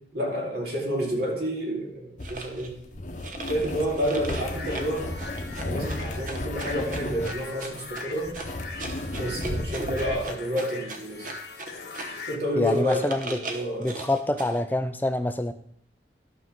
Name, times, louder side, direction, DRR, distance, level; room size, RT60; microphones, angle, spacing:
voice 1, 0.1-2.8 3.5-5.1 5.6-8.4 9.2-11.3 12.3-13.9, equal, 65° right, -2 dB, 2.6 m, -29 dB
sound 1, 2.2-10.2, left 1 dB, 45° left, 0.8 m, -34 dB
sound 2, 2.2-2.7 3.2-12.3 12.6-14.6, right 2 dB, 50° right, 1.0 m, -39 dB
sound 3, 4.3-12.4, left 4 dB, 80° left, 1.3 m, -41 dB
voice 2, 12.6-13.4 13.8-15.5, left 1 dB, 10° left, 9 dB, 0.4 m, -26 dB
11.5 x 6.2 x 3.7 m, 0.65 s
head